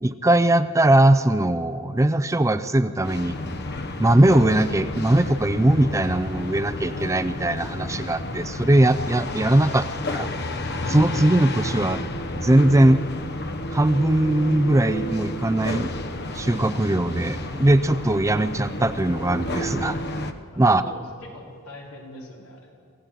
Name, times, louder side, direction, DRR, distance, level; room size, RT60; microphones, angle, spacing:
voice 1, 0.0-3.4 4.0-9.8 10.1-10.3 10.9-12.0 12.4-13.0 13.7-15.9 16.3-20.0 20.6-20.8, right 1 dB, 15° right, 12 dB, 0.5 m, -20 dB
sound 1, 3.0-20.3, left 1 dB, 50° left, 1.0 m, -31 dB
voice 2, 20.5-22.7, left 1 dB, 85° left, -1 dB, 4.5 m, -42 dB
25.0 x 16.0 x 7.6 m, 2.3 s
head